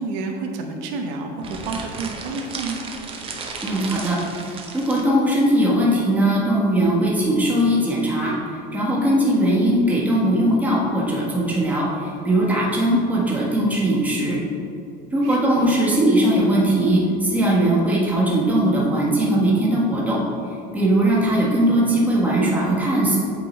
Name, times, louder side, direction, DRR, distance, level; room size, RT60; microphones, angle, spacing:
voice 1, 0.0-2.9 15.2-15.7, right 3 dB, 85° right, 3 dB, 0.9 m, -30 dB
sound 1, 1.4-5.1, right 4 dB, 25° right, 0.7 m, -34 dB
voice 2, 3.6-14.4 15.1-20.2 20.7-23.2, right 1 dB, 5° right, -6 dB, 1.3 m, -20 dB
8.0 x 3.8 x 4.2 m, 2.5 s
cardioid pair, 155°, 21 cm